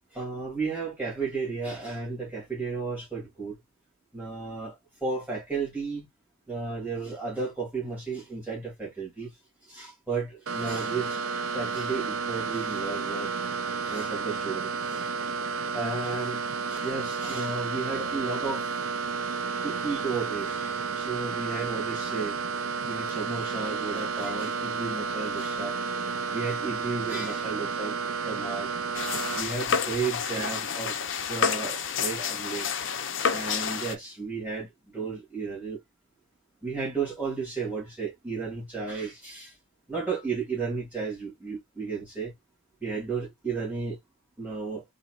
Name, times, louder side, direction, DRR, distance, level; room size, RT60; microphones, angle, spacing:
voice 1, 0.1-3.5 4.1-6.1 6.5-9.3 9.6-11.2 11.5-13.3 13.8-15.2 15.7-18.7 19.6-22.4 22.9-25.8 26.2-28.0 28.2-31.0 31.3-32.7 33.3-35.8 36.6-39.6 39.9-42.3 42.8-44.0 44.4-44.8, right 4 dB, 10° right, 2.5 m, -33 dB
sound 1, 10.5-29.4, right 5 dB, 80° right, 0.5 m, -31 dB
sound 2, 28.9-33.9, left 7 dB, 60° left, 0.6 m, -29 dB
4.1 x 3.8 x 2.4 m
head